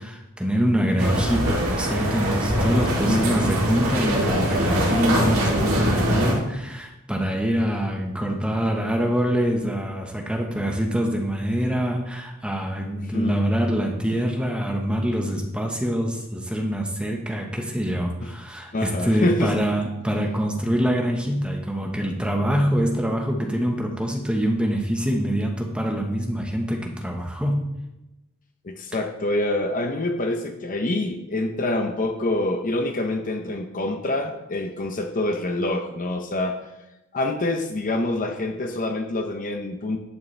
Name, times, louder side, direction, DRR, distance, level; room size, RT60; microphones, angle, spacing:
voice 1, 0.0-27.6, equal, 5° right, 1 dB, 1.2 m, -25 dB
sound 1, 1.0-6.3, equal, 75° right, 2.7 m, -23 dB
voice 2, 13.0-13.4 18.2-18.3 18.7-19.5 28.6-36.6 37.1-40.0, left 2 dB, 40° left, 5 dB, 0.8 m, -26 dB
11.5 x 8.3 x 3.4 m, 0.95 s
head